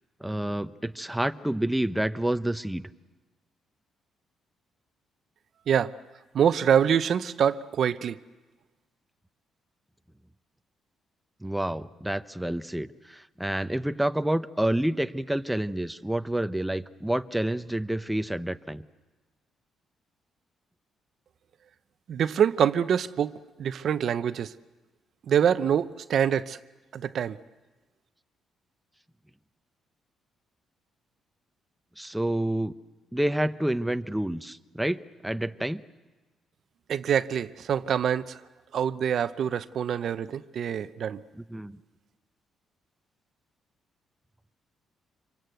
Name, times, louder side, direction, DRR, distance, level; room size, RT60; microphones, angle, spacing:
voice 1, 0.2-2.8 11.4-18.8 32.0-32.7 33.1-35.8 41.3-41.8, right 1 dB, 5° right, 10 dB, 0.8 m, -28 dB
voice 2, 6.3-8.2 22.1-23.3 23.6-24.5 25.3-26.6 26.9-27.4 36.9-38.4 38.7-41.2, right 8 dB, 60° right, 13 dB, 0.7 m, -25 dB
26.5 x 23.5 x 7.9 m, 1.2 s
cardioid pair, 90°, 0 cm